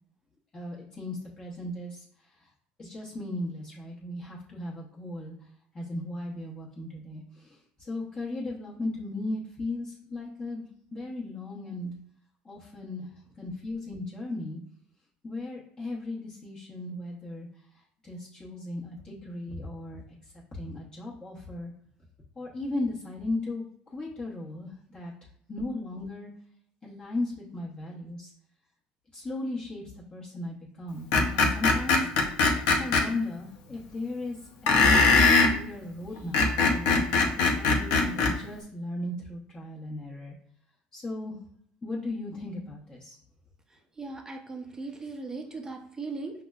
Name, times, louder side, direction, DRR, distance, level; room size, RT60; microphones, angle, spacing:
voice 1, 0.5-2.0 2.8-5.3 5.7-7.6 7.9-10.6 10.9-11.9 12.4-13.1 13.4-14.6 15.2-17.5 18.0-20.0 20.5-21.7 22.4-23.6 23.9-25.1 25.5-26.3 26.8-28.3 29.1-29.8 30.1-32.1 32.8-34.4 35.5-37.0 37.4-40.3 40.9-41.4 41.8-43.2, left 2 dB, 25° left, -5 dB, 1.0 m, -36 dB
Screech, 31.1-33.0 34.7-35.5 36.2-38.3, left 3 dB, 80° left, 0.6 m, -21 dB
voice 2, 44.0-46.3, right 3 dB, 20° right, 4 dB, 0.7 m, -38 dB
5.8 x 2.1 x 2.4 m, 0.63 s
supercardioid pair, 100°, 3 cm